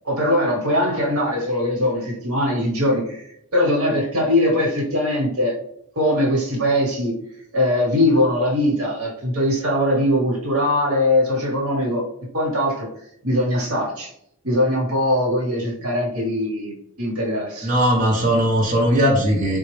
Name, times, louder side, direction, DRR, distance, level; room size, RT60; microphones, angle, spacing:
voice 1, 0.0-3.2 3.5-5.5 6.0-7.1 7.5-12.0 12.3-12.9 13.2-14.1 14.4-17.7, left 1 dB, 85° right, -1 dB, 1.2 m, -21 dB
voice 2, 17.6-19.6, equal, 35° right, -3 dB, 0.8 m, -18 dB
3.9 x 2.3 x 3.1 m, 0.73 s
head